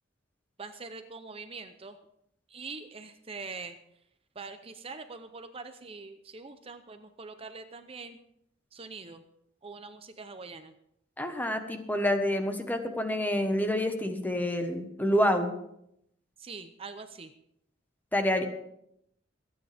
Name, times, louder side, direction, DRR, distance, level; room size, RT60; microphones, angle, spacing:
voice 1, 0.6-2.0 2.5-3.8 4.4-8.2 8.7-9.2 9.6-10.7 16.4-17.3, right 4 dB, 30° right, 8 dB, 0.7 m, -43 dB
voice 2, 11.2-15.5 18.1-18.5, left 1 dB, 10° left, 6 dB, 1.3 m, -28 dB
25.0 x 9.5 x 3.5 m, 0.76 s
head